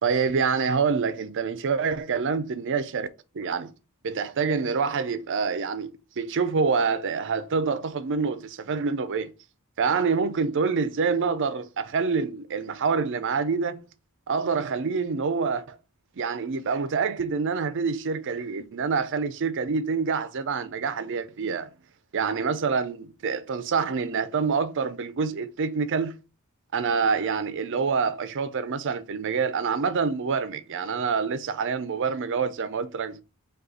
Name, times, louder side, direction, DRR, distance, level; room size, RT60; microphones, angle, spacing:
voice 1, 0.0-3.1 3.3-3.7 4.0-5.9 6.2-9.3 9.8-13.8 14.3-15.8 16.2-21.7 22.1-26.1 26.7-33.2, right 5 dB, 55° right, 0.5 m, -26 dB
5.2 x 2.3 x 4.1 m
head